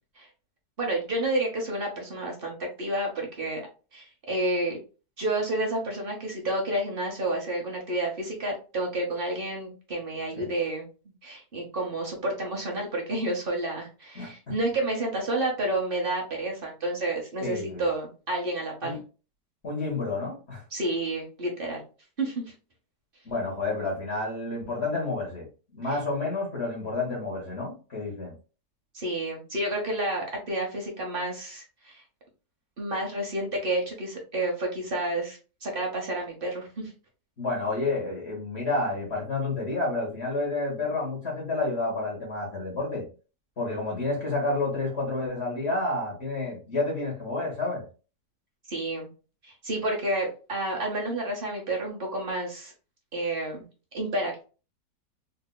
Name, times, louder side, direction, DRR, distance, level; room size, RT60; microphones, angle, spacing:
voice 1, 0.8-3.6 3.9-4.8 5.2-10.9 11.2-19.0 20.7-21.8 22.2-22.5 25.9-26.0 28.9-32.0 32.8-36.9 48.6-49.1 49.4-52.7 53.1-53.6 53.9-54.4, right 1 dB, 40° right, 0.9 m, -30 dB
voice 2, 17.4-17.8 18.8-19.0 19.6-20.6 23.2-25.4 25.7-28.3 37.4-43.0 43.6-47.8, left 2 dB, 40° left, 1.5 m, -30 dB
3.9 x 2.7 x 2.2 m
omnidirectional pair, 1.8 m